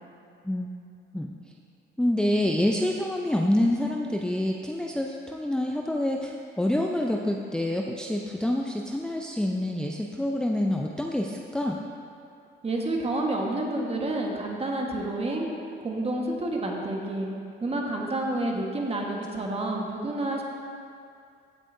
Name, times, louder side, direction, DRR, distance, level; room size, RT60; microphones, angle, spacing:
voice 1, 2.0-11.8, left 1 dB, 5° left, 0 dB, 0.5 m, -27 dB
voice 2, 12.6-15.5 15.8-17.3 17.6-20.4, right 2 dB, 30° right, -1 dB, 1.4 m, -29 dB
15.5 x 6.2 x 2.7 m, 2.4 s
cardioid pair, 90°, 20 cm